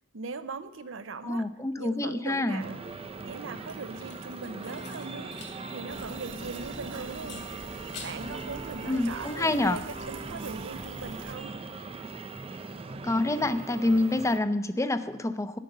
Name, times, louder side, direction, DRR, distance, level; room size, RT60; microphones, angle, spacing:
voice 1, 0.1-1.5 1.8-2.8 3.2-5.3 5.7-7.4 8.0-11.6, right 4 dB, 85° right, 12 dB, 0.7 m, -40 dB
voice 2, 1.2-2.6 8.9-9.8 13.0-15.6, left 2 dB, 15° left, 12 dB, 0.6 m, -27 dB
sound 1, 2.6-14.4, right 3 dB, 30° right, 0.5 m, -40 dB
sound 2, 3.6-5.6 5.9-6.0 7.2-8.4 8.8-9.2, left 5 dB, 60° left, 2.4 m, -48 dB
Fill (with liquid), 5.9-11.3, right 3 dB, 70° right, 1.5 m, -46 dB
10.5 x 9.2 x 6.7 m, 0.94 s
head